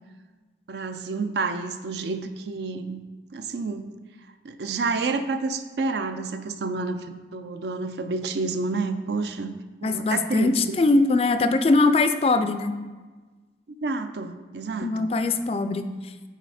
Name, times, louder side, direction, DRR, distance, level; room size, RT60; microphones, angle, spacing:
voice 1, 0.7-3.0 3.3-3.9 4.4-9.5 9.8-10.8 13.8-15.1, right 3 dB, 70° right, 9 dB, 0.5 m, -29 dB
voice 2, 9.8-12.7 14.8-15.9, left 3 dB, 35° left, 10 dB, 0.3 m, -21 dB
8.1 x 3.4 x 4.9 m, 1.3 s
head